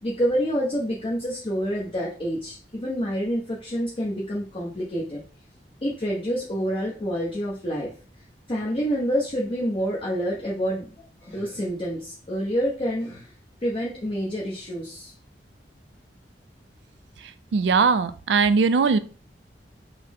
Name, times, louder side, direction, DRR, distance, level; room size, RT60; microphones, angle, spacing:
voice 1, 0.0-5.2 5.8-7.9 8.5-10.9 11.2-13.3 13.6-15.1, equal, 30° left, -5 dB, 0.7 m, -27 dB
voice 2, 17.5-19.0, right 5 dB, 80° right, 12 dB, 0.4 m, -20 dB
5.5 x 2.0 x 3.4 m, 0.39 s
head